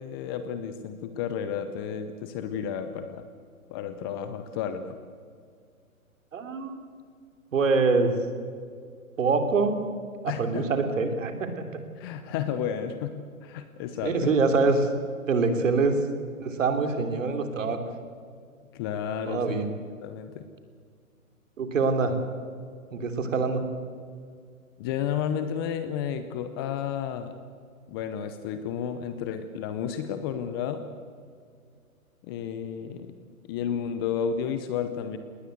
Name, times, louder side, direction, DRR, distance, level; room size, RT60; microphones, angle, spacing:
voice 1, 0.0-3.3 3.7-4.9 10.3-10.7 12.0-14.3 18.7-19.6 20.0-20.5 24.8-27.3 27.9-30.8 32.2-33.1 33.5-35.2, left 8 dB, 15° left, 10 dB, 0.7 m, -32 dB
voice 2, 6.3-6.8 7.5-8.1 9.2-9.8 10.2-11.7 14.0-14.9 15.3-16.0 16.4-17.8 19.3-19.7 21.6-22.2 22.9-23.6, right 4 dB, 60° right, 7 dB, 3.2 m, -24 dB
19.5 x 19.0 x 8.1 m, 2.1 s
hypercardioid pair, 135°, 43 cm